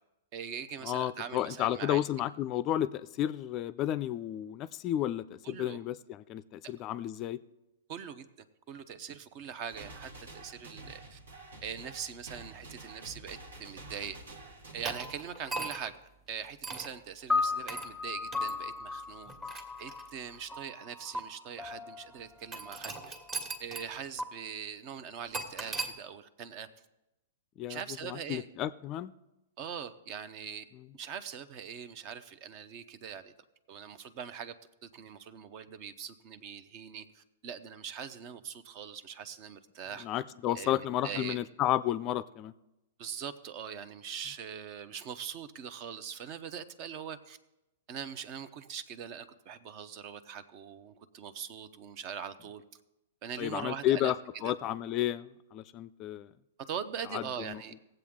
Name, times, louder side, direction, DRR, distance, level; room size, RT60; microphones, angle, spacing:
voice 1, 0.3-2.0 5.4-5.8 7.9-8.3 8.7-11.2 11.6-14.2 14.7-15.9 16.3-19.3 19.8-23.0 23.6-26.7 27.7-28.5 29.6-30.6 30.9-33.3 33.7-34.5 34.8-40.1 40.5-41.4 43.0-47.4 47.9-52.6 53.2-54.5 56.7-57.7, right 7 dB, 45° right, 13 dB, 0.7 m, -42 dB
voice 2, 0.8-7.4 27.6-29.1 40.0-42.5 53.4-56.3 57.1-57.6, left 12 dB, 35° left, 15 dB, 0.4 m, -32 dB
sound 1, 9.7-15.2, right 2 dB, 85° right, 1.6 m, -48 dB
sound 2, 14.8-16.0 16.6-16.9 17.7-17.9 18.3-18.5 19.2-20.4 21.1-21.2 22.5-23.9 24.2-24.3 25.3-25.9, right 3 dB, 25° right, 1.5 m, -38 dB
sound 3, 17.3-23.7, left 4 dB, 5° left, 0.7 m, -36 dB
17.5 x 7.8 x 3.6 m, 0.93 s
hypercardioid pair, 120°, 0 cm